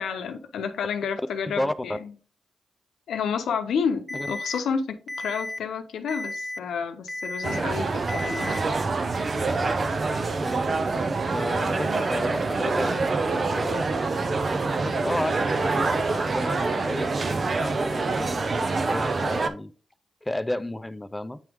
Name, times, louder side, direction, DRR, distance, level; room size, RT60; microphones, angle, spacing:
voice 1, 0.0-2.1 3.1-8.6, left 6 dB, 85° left, 0.7 m, -30 dB
voice 2, 1.5-2.0 4.1-4.3 10.4-10.7 11.3-17.1 17.6-19.7 20.2-21.4, left 1 dB, 15° left, 0.6 m, -32 dB
Alarm, 4.1-4.6 5.1-5.6 6.1-6.6 7.1-7.6 8.1-8.6, left 2 dB, 5° right, 0.9 m, -33 dB
sound 1, 7.4-19.5, right 3 dB, 55° right, 0.7 m, -26 dB
8.8 x 3.0 x 3.5 m
supercardioid pair, 45°, 0 cm